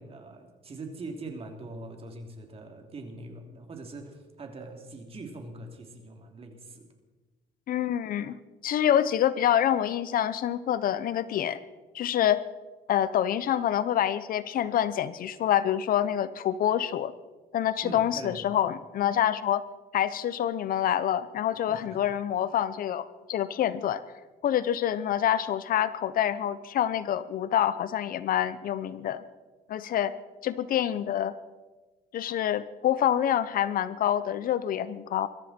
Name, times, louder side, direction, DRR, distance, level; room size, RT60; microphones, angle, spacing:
voice 1, 0.0-6.9 17.8-18.5 21.7-22.0, right 2 dB, 35° right, 3 dB, 3.2 m, -42 dB
voice 2, 7.7-8.3 8.6-11.6 11.9-12.4 12.9-17.1 17.5-19.6 19.9-24.0 24.4-29.2 29.7-30.1 30.4-31.3 32.1-35.3, left 10 dB, 60° left, 15 dB, 0.8 m, -26 dB
22.5 x 13.5 x 4.4 m, 1.2 s
cardioid pair, 110°, 17 cm